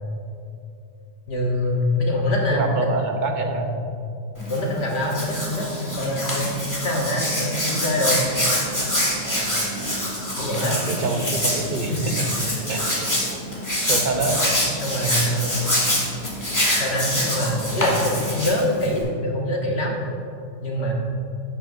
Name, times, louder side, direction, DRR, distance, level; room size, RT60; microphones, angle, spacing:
voice 1, 1.3-2.9 3.5-3.7 4.5-8.2 10.4-10.8 11.9-12.0 12.5-12.6 14.4-15.5 16.8-20.0 20.6-20.9, left 1 dB, 65° left, -1 dB, 1.4 m, -24 dB
voice 2, 2.5-3.7 9.2-9.6 10.5-11.9 12.7-13.0 13.9-14.4, right 3 dB, 45° right, 4 dB, 0.9 m, -26 dB
Hands, 4.4-19.0, equal, 15° left, 2.0 m, -25 dB
11.0 x 8.7 x 2.6 m, 2.5 s
omnidirectional pair, 1.2 m